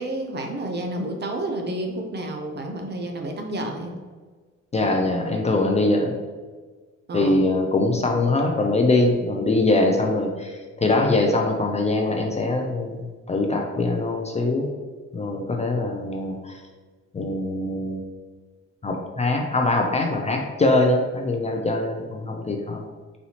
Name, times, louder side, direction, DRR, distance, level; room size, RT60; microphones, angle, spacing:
voice 1, 0.0-3.9 4.8-4.9 7.1-7.4, right 1 dB, 35° right, 3 dB, 0.6 m, -30 dB
voice 2, 4.7-6.1 7.1-14.7 15.1-16.6 17.1-18.0 18.8-22.8, left 2 dB, 20° left, 1 dB, 0.4 m, -22 dB
4.1 x 2.7 x 2.8 m, 1.4 s
cardioid pair, 90°, 30 cm